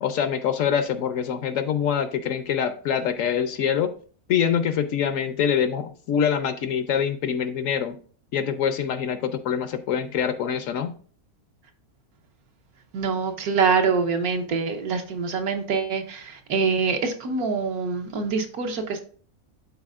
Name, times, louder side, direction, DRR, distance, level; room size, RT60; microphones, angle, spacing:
voice 1, 0.0-3.9 4.3-8.0 8.3-10.9, left 8 dB, 70° left, 10 dB, 0.9 m, -25 dB
voice 2, 12.9-19.0, right 5 dB, 75° right, 5 dB, 1.4 m, -25 dB
11.5 x 4.1 x 2.4 m, 0.44 s
omnidirectional pair, 1.6 m